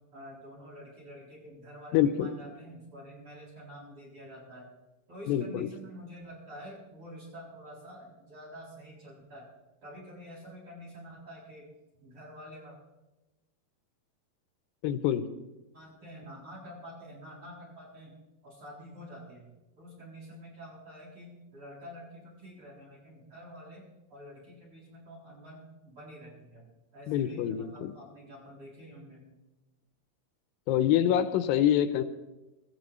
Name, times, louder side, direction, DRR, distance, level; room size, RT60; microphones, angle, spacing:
voice 1, 0.1-4.6 5.1-9.5 9.8-11.7 12.0-12.8 15.7-18.1 18.4-19.5 19.8-23.8 24.1-26.6 26.9-29.3, equal, 35° right, -6 dB, 8.1 m, -48 dB
voice 2, 1.9-2.3 5.3-5.7 14.8-15.2 27.1-27.9 30.7-32.0, left 10 dB, 85° left, 11 dB, 2.4 m, -26 dB
25.0 x 14.0 x 3.2 m, 1.0 s
omnidirectional pair, 4.1 m